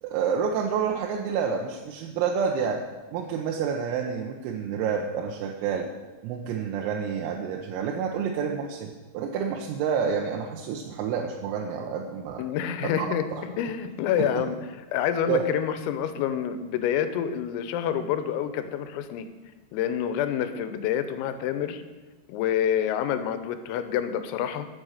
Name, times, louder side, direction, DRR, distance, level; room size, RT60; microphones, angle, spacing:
voice 1, 0.0-2.8 3.1-5.9 6.2-12.4 13.0-13.1 13.3-13.4 14.2-14.5 15.3-15.4, right 7 dB, 90° right, 1 dB, 3.6 m, -29 dB
voice 2, 12.4-19.3 19.7-21.8 22.3-24.7, left 9 dB, 90° left, 10 dB, 3.6 m, -28 dB
14.0 x 7.6 x 6.5 m, 1.2 s
omnidirectional pair, 5.9 m